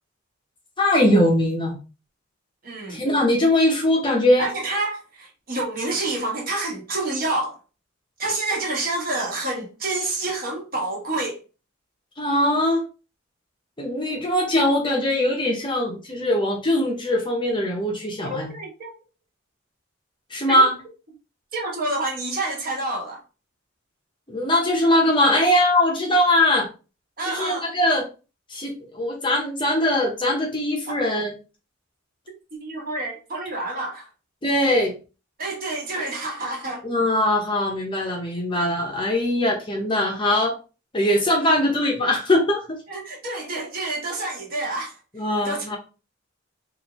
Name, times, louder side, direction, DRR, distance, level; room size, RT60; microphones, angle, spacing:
voice 1, 0.8-1.8 2.9-4.5 12.2-12.8 13.8-18.5 20.3-20.8 24.3-26.7 27.3-28.1 28.5-31.3 34.4-34.9 36.8-40.6 40.9-42.8 45.2-45.8, left 1 dB, 25° left, 0.7 m, -21 dB
voice 2, 2.6-3.0 4.4-7.6 8.2-11.4 18.2-18.9 20.5-20.6 21.5-23.2 27.2-27.7 30.9-31.0 32.5-34.1 35.4-36.9 41.4-41.7 42.9-45.0 45.4-45.8, right 2 dB, 45° right, 1.3 m, -28 dB
4.3 x 2.6 x 3.0 m
head